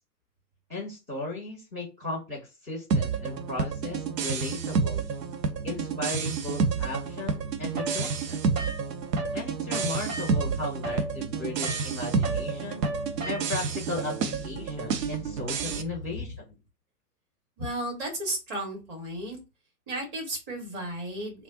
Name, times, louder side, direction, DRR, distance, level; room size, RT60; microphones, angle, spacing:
voice 1, 0.7-5.1 5.6-8.5 9.3-12.9 13.2-16.3, left 2 dB, 5° right, -13 dB, 0.4 m, -36 dB
sound 1, 2.9-15.8, right 5 dB, 80° right, 0.6 m, -30 dB
sound 2, 7.8-9.4 9.7-13.8, right 2 dB, 55° right, 1.2 m, -36 dB
voice 2, 17.6-19.4 19.9-21.4, right 1 dB, 25° right, 1 dB, 1.1 m, -34 dB
3.2 x 2.3 x 2.6 m, 0.27 s
figure-of-eight pair, 120°, 49 cm